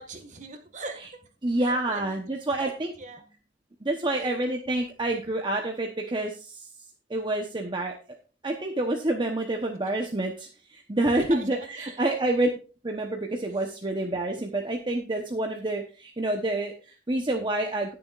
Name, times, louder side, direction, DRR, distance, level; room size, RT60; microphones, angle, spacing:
voice 1, 0.0-1.3 1.6-3.2 4.1-4.4 11.2-12.0, right 3 dB, 45° right, 6 dB, 1.8 m, -41 dB
voice 2, 1.4-2.9 3.8-6.7 7.1-7.9 8.4-12.5 12.8-17.9, right 2 dB, 25° right, 2 dB, 1.0 m, -28 dB
18.5 x 7.0 x 2.5 m, 0.34 s
head